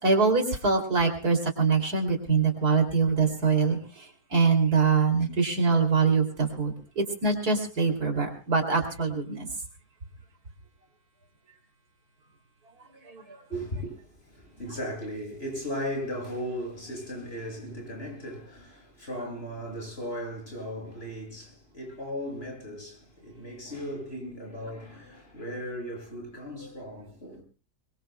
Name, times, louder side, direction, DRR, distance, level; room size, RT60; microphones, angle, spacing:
voice 1, 0.0-3.8 4.3-9.5 13.1-13.2, right 4 dB, 70° right, 3.4 m, -24 dB
voice 2, 13.5-27.4, equal, 35° left, 7.1 m, -37 dB
23.5 x 23.0 x 2.2 m
omnidirectional pair, 1.7 m